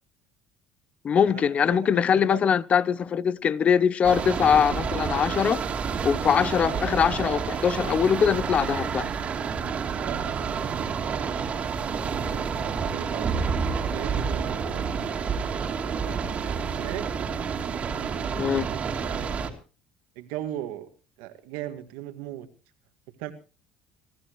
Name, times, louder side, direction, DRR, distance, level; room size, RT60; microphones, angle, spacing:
voice 1, 1.0-5.6 6.0-9.1 18.4-18.7, left 7 dB, 40° left, 0.7 m, -22 dB
voice 2, 1.7-2.4 10.0-11.5 11.9-13.3 13.9-15.1 15.9-17.1 18.0-19.5 20.2-20.9 21.2-22.5 23.2-23.3, right 13 dB, 85° right, 2.0 m, -39 dB
sound 1, 4.0-19.5, right 6 dB, 40° right, 2.8 m, -29 dB
24.0 x 14.0 x 3.1 m
supercardioid pair, 100°, 3 cm